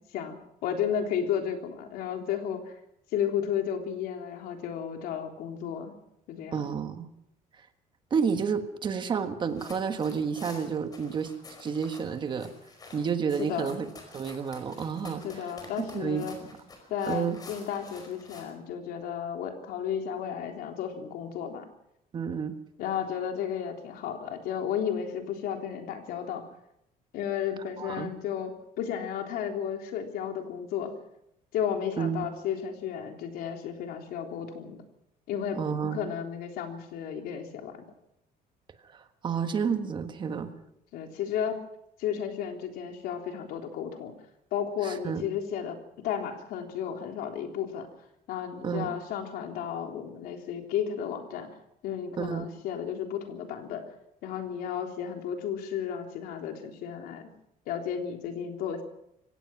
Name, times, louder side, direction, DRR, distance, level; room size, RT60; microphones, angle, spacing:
voice 1, 0.0-2.7 3.1-5.9 6.3-6.7 13.4-13.8 15.2-16.4 16.9-21.7 22.8-26.4 27.1-30.9 31.5-34.8 35.3-37.8 40.9-41.6 42.0-44.1 44.5-45.8 46.0-47.9 48.3-51.5 51.8-53.8 54.2-57.3 57.7-58.8, left 8 dB, 75° left, 4 dB, 3.6 m, -33 dB
voice 2, 6.5-7.1 8.1-11.3 11.6-12.5 12.9-13.8 14.1-15.5 15.8-16.3 17.1-17.4 22.1-22.5 27.8-28.1 32.0-32.2 35.5-36.1 38.8-40.5 44.8-45.2 48.6-48.9 52.2-52.5, right 6 dB, 30° right, 8 dB, 1.5 m, -30 dB
sound 1, 9.5-18.5, left 3 dB, 25° left, 5.0 m, -49 dB
25.0 x 17.0 x 6.1 m, 0.77 s
cardioid pair, 160°, 16 cm